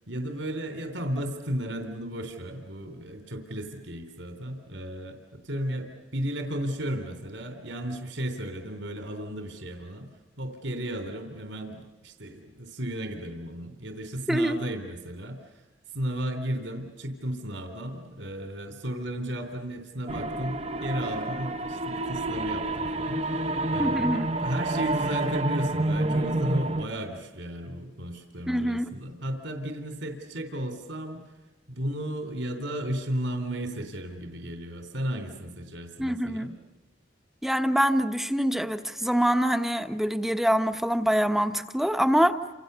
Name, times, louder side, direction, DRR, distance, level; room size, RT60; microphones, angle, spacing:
voice 1, 0.1-10.1 10.4-15.6 15.9-31.2 31.7-36.5, right 1 dB, 65° right, 6 dB, 3.5 m, -34 dB
voice 2, 14.3-14.6 23.8-24.3 28.5-28.9 36.0-36.5 37.4-42.4, equal, ahead, 8 dB, 1.2 m, -25 dB
sound 1, 20.1-26.9, right 2 dB, 30° right, 1.0 m, -29 dB
29.5 x 27.5 x 6.9 m, 1.1 s
head